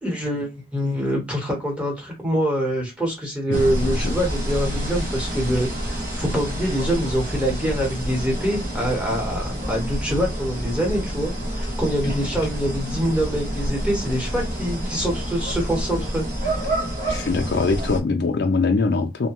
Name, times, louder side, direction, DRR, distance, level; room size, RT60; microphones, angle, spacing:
voice 1, 0.0-16.6, equal, 5° right, 1.1 m, -25 dB
voice 2, 3.5-4.1 17.1-19.3, left 3 dB, 60° left, 0.5 m, -23 dB
sound 1, 3.5-18.0, right 1 dB, 50° right, 0.9 m, -28 dB
2.8 x 2.1 x 2.9 m
head